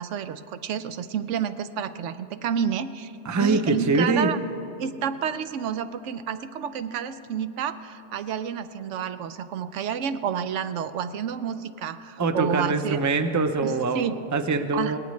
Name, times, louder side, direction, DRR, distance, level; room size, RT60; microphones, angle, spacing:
voice 1, 0.0-3.1 3.4-4.4 4.8-13.0 13.6-14.1 14.7-15.0, right 8 dB, 90° right, 12 dB, 1.0 m, -30 dB
voice 2, 3.2-4.3 12.2-15.0, right 3 dB, 25° right, 8 dB, 0.4 m, -24 dB
18.5 x 18.5 x 3.2 m, 2.6 s
omnidirectional pair, 1.2 m